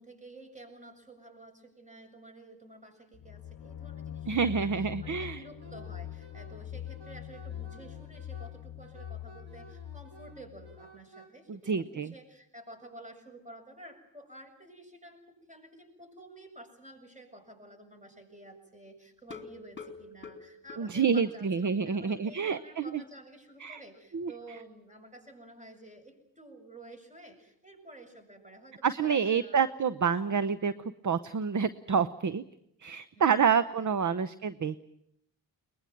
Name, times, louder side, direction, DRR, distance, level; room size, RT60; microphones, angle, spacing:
voice 1, 0.0-29.8 33.1-33.9, right 1 dB, 15° right, 4 dB, 7.4 m, -51 dB
sound 1, 3.1-10.9, left 11 dB, 55° left, 1.1 m, -43 dB
voice 2, 4.3-5.4 11.5-12.1 20.8-23.0 23.6-23.8 24.1-24.3 28.8-30.7 31.0-32.4 32.8-34.8, right 6 dB, 40° right, 15 dB, 0.9 m, -28 dB
Wind instrument woodwind instrument, 5.6-11.3, right 4 dB, 60° right, 7.4 m, -54 dB
sound 2, 19.2-21.8 22.1-22.2 22.6-22.7 23.0-23.1, left 4 dB, 25° left, 2.8 m, -47 dB
22.5 x 21.0 x 9.2 m, 0.76 s
cardioid pair, 65°, 45 cm